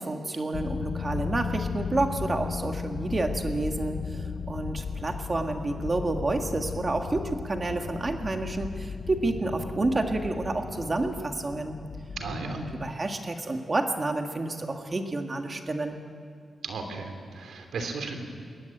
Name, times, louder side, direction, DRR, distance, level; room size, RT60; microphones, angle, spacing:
voice 1, 0.0-11.8 12.4-16.0, right 2 dB, 25° right, 5 dB, 1.7 m, -29 dB
sound 1, 0.5-13.0, left 6 dB, 55° left, 0.6 m, -35 dB
voice 2, 12.2-12.6 16.6-18.3, right 4 dB, 90° right, 5 dB, 3.1 m, -35 dB
21.5 x 17.5 x 9.1 m, 2.3 s
wide cardioid pair, 180°, 0 cm